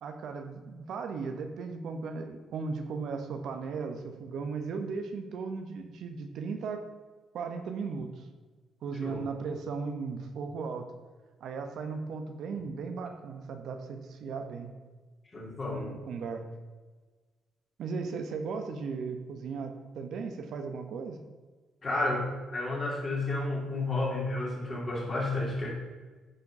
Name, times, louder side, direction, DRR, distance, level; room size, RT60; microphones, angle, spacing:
voice 1, 0.0-6.8 7.3-8.3 8.8-10.9 11.4-14.7 15.7-16.4 17.8-21.2, right 5 dB, 70° right, 6 dB, 1.1 m, -36 dB
voice 2, 15.3-15.9 21.8-25.7, left 2 dB, 35° left, -2 dB, 3.1 m, -31 dB
10.5 x 4.6 x 5.4 m, 1.3 s
cardioid pair, 90°, 0 cm